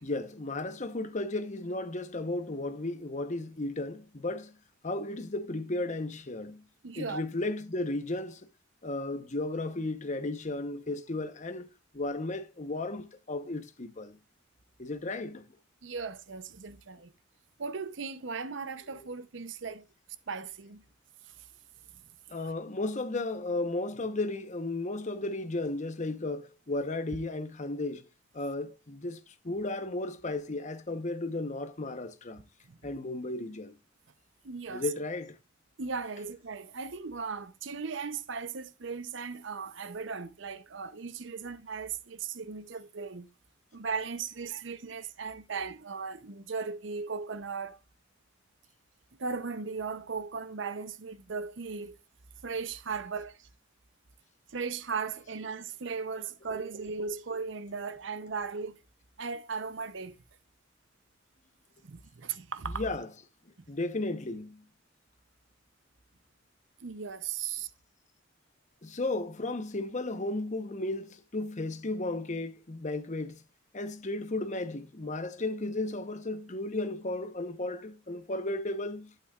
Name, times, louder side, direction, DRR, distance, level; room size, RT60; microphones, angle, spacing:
voice 1, 0.0-4.5 4.8-6.6 7.0-8.5 8.8-14.2 14.8-15.5 18.9-19.1 22.3-28.0 28.3-32.4 32.8-33.8 34.7-35.4 62.6-63.2 63.7-64.6 67.4-67.6 68.8-73.4 73.7-79.1, left 2 dB, 35° left, 0.9 m, -34 dB
voice 2, 6.8-7.2 15.8-17.1 17.6-19.8 20.3-20.8 34.4-34.8 35.8-43.3 43.7-47.8 49.2-52.0 52.4-53.5 54.5-58.8 59.2-60.1 61.8-62.8 66.8-67.7, right 5 dB, 65° right, 0.7 m, -37 dB
11.5 x 9.0 x 2.4 m
head